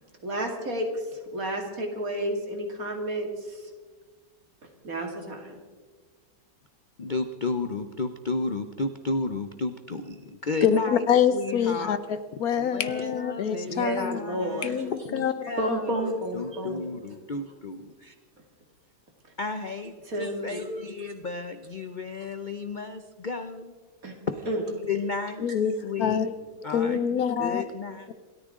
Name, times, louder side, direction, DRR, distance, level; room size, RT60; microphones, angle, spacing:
voice 1, 0.2-3.7 4.8-5.6 13.6-14.8 15.6-16.9 20.0-21.1 24.0-24.1 24.5-24.6, right 1 dB, 55° right, 2 dB, 2.9 m, -31 dB
voice 2, 7.0-11.0 11.3-12.0 12.6-18.1 19.4-23.7 24.3-24.5 24.9-25.5 25.8-26.3 26.6-27.0 27.4-28.0, left 3 dB, 45° left, 8 dB, 0.6 m, -33 dB
voice 3, 10.6-14.2 14.6-15.3 15.7-15.8 25.4-26.3 26.7-27.6, left 8 dB, 70° left, 12 dB, 1.2 m, -25 dB
27.5 x 13.5 x 3.7 m, 1.4 s
omnidirectional pair, 1.8 m